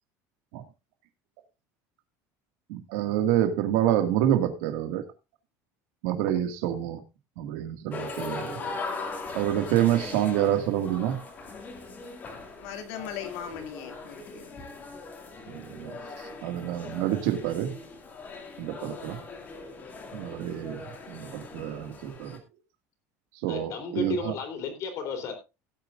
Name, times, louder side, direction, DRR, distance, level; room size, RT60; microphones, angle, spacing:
voice 1, 2.7-5.0 6.0-7.0 7.4-8.7 9.3-11.2 15.5-17.8 18.6-19.2 20.1-22.4 23.4-24.4, right 11 dB, 80° right, 2.0 m, -28 dB
sound 1, 7.9-22.4, left 3 dB, 25° left, 2.3 m, -40 dB
voice 2, 12.6-14.9, left 8 dB, 80° left, 2.4 m, -39 dB
voice 3, 23.5-25.3, left 4 dB, 45° left, 3.5 m, -33 dB
17.5 x 9.0 x 2.5 m
cardioid pair, 175°, 8 cm